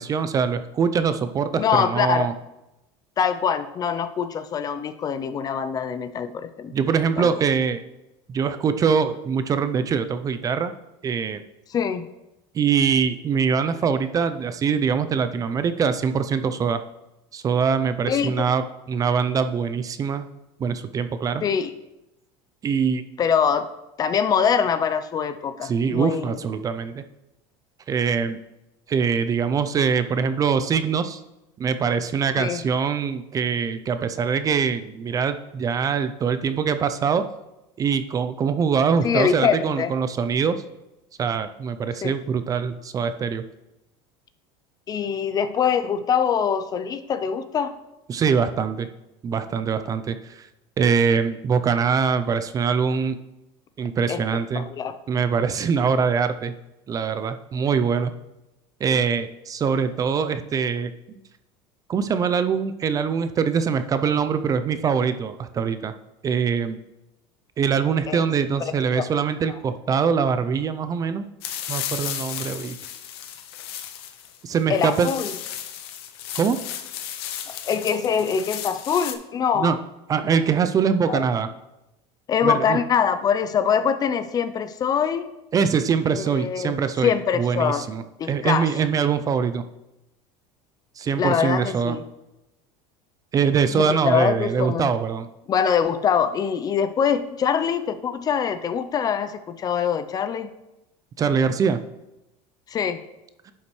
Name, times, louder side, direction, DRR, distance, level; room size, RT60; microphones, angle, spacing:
voice 1, 0.0-2.3 6.7-7.8 8.3-10.7 11.0-11.4 12.5-16.8 17.3-20.3 20.6-21.4 22.6-23.0 25.6-27.0 27.9-28.4 28.9-31.2 31.6-37.2 37.8-40.6 41.2-43.4 48.1-48.9 49.2-50.5 50.8-53.2 53.8-54.7 55.1-56.5 56.9-58.1 58.8-60.9 61.9-65.9 66.2-66.8 67.6-71.3 71.7-72.8 74.4-75.1 76.4-76.6 79.6-79.8 80.1-81.5 82.4-82.8 85.5-89.6 91.0-92.0 93.3-95.3 101.2-101.8, right 6 dB, 25° right, 10 dB, 0.4 m, -23 dB
voice 2, 1.6-2.3 3.2-6.7 7.2-7.3 11.7-12.0 18.1-18.5 21.4-21.7 23.2-23.7 24.0-26.4 32.4-32.6 39.0-39.9 42.0-42.1 44.9-47.7 54.1-54.2 54.5-55.0 68.1-68.2 68.9-69.0 74.7-75.3 77.5-79.8 81.1-81.2 82.3-85.3 86.2-86.8 87.0-87.9 88.2-88.7 91.2-92.0 93.7-94.9 95.5-100.5 102.7-103.0, left 7 dB, 30° left, 11 dB, 0.5 m, -23 dB
sound 1, 71.4-79.1, left 10 dB, 90° left, 0.7 m, -34 dB
11.0 x 5.7 x 3.1 m, 0.94 s
supercardioid pair, 125°, 13 cm